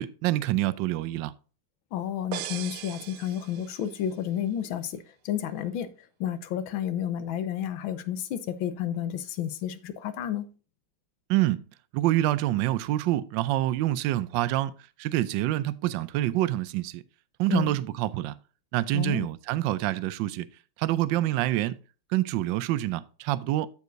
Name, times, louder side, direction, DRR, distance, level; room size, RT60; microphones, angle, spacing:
voice 1, 0.0-1.3 11.3-11.6 11.9-14.7 15.0-17.0 17.4-18.4 18.7-20.5 20.8-21.8 22.1-23.7, right 15 dB, 75° right, 1.2 m, -26 dB
voice 2, 1.9-5.9 6.2-10.5 17.5-17.7 18.9-19.3, left 10 dB, 75° left, 1.5 m, -31 dB
sound 1, 2.3-4.1, right 13 dB, 90° right, 1.5 m, -39 dB
14.0 x 4.7 x 2.6 m
omnidirectional pair, 2.3 m